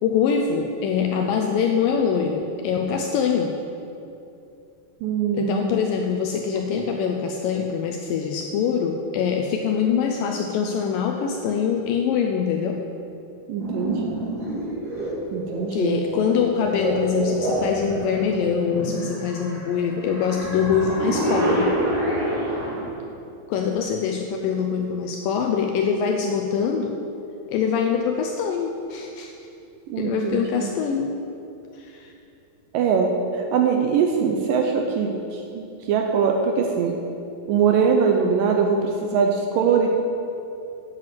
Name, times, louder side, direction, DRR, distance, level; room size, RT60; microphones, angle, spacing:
voice 1, 0.0-3.5 5.3-12.8 15.7-21.7 23.5-27.0 27.5-29.3 30.0-31.2 31.7-32.1, left 6 dB, 85° left, 3 dB, 2.0 m, -24 dB
voice 2, 5.0-5.7 13.5-14.2 15.3-16.1 29.9-30.7 32.7-33.1 33.3-35.1 35.5-37.0 37.5-39.9, right 6 dB, 80° right, 2 dB, 2.1 m, -22 dB
sound 1, 13.6-22.9, right 1 dB, 30° right, 3.3 m, -27 dB
7.9 x 7.4 x 7.6 m, 2.7 s
omnidirectional pair, 4.5 m